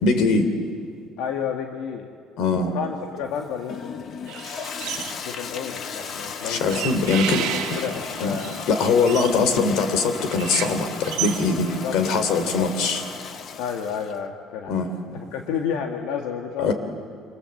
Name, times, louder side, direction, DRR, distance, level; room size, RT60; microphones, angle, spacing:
voice 1, 0.0-0.5 2.4-2.7 6.5-7.4 8.2-8.3 8.7-13.0 14.7-15.2 16.6-16.7, left 4 dB, 60° left, 9 dB, 3.1 m, -22 dB
voice 2, 1.2-2.1 2.7-4.6 5.2-8.7 11.4-12.0 12.3-12.7 13.6-14.9 15.1-16.7, left 7 dB, 85° left, 3 dB, 1.8 m, -31 dB
Toilet flush, 3.2-14.2, left 6 dB, 35° left, 1.0 m, -35 dB
sound 1, 4.3-5.4 5.7-11.9, right 13 dB, 75° right, 1.7 m, -34 dB
27.5 x 27.0 x 7.9 m, 2.2 s
cardioid pair, 170°, 0 cm